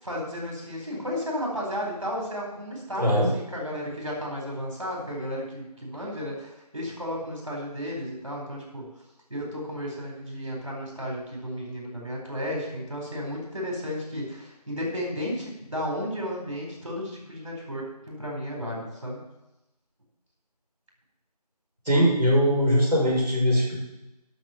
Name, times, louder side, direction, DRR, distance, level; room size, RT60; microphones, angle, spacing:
voice 1, 0.0-8.8 9.3-19.2, equal, 50° right, -2 dB, 4.3 m, -33 dB
voice 2, 3.0-3.3 21.8-23.8, equal, 5° right, -24 dB, 3.5 m, -21 dB
11.5 x 6.5 x 7.1 m, 0.95 s
figure-of-eight pair, 180°, 21 cm